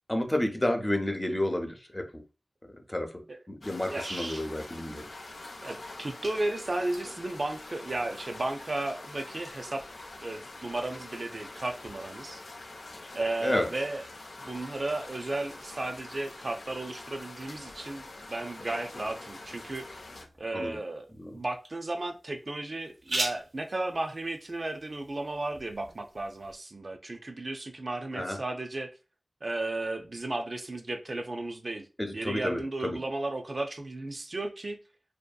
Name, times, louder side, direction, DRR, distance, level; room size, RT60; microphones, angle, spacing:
voice 1, 0.1-2.2 2.9-3.1 3.5-5.1 13.4-13.7 20.5-20.8 21.2-21.4 28.1-28.4 32.0-33.0, left 1 dB, 20° left, 0.5 m, -30 dB
sound 1, 3.6-20.3, left 2 dB, 70° left, 0.4 m, -45 dB
voice 2, 3.9-4.5 5.6-9.8 10.2-12.4 13.1-14.0 14.4-19.9 20.4-21.1 21.3-28.9 29.4-31.9 32.1-34.8, right 2 dB, 50° right, 0.3 m, -34 dB
sound 2, 19.0-26.6, right 2 dB, 80° right, 0.7 m, -41 dB
2.6 x 2.4 x 2.2 m
wide cardioid pair, 55°, 0 cm